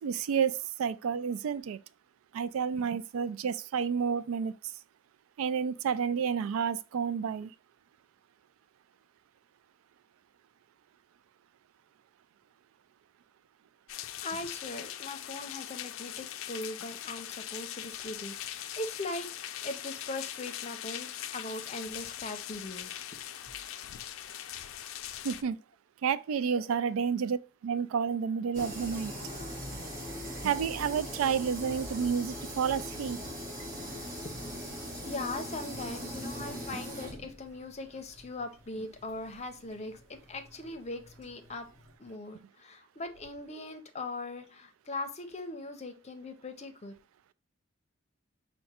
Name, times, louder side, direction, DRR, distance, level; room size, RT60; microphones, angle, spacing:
voice 1, 0.0-1.8 2.3-4.5 5.4-7.5 25.2-25.6 26.0-29.1 30.4-33.2, right 7 dB, 90° right, 0.3 m, -30 dB
sound 1, 13.9-25.4, left 11 dB, 80° left, 0.4 m, -41 dB
voice 2, 14.2-23.0 26.6-26.8 33.8-34.4 35.0-41.7 42.0-46.9, left 2 dB, 30° left, 0.6 m, -40 dB
sound 2, 28.5-41.9, equal, 40° right, 1.5 m, -41 dB
5.6 x 2.2 x 4.2 m
head